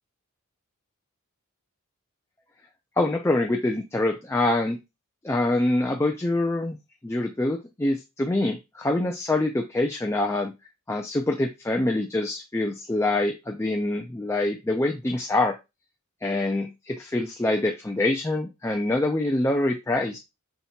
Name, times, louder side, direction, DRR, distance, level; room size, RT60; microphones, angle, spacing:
voice 1, 3.0-4.8 5.2-6.8 7.0-10.5 10.9-15.6 16.2-20.2, left 2 dB, 10° left, 2 dB, 0.4 m, -25 dB
5.8 x 3.3 x 2.8 m, 0.24 s
head